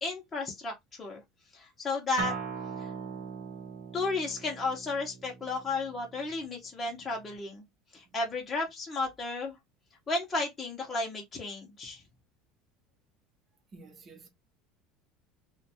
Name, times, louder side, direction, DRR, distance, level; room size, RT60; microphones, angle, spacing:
voice 1, 0.0-0.7 1.0-1.2 1.5-2.3 2.8-2.9 3.9-7.6 7.9-9.5 10.1-12.0, left 3 dB, 20° left, 0.7 m, -33 dB
Acoustic guitar, 2.2-7.4, right 6 dB, 90° right, 0.9 m, -41 dB
voice 2, 13.7-14.3, right 3 dB, 25° right, 0.8 m, -51 dB
2.5 x 2.2 x 2.7 m
cardioid pair, 140°, 0 cm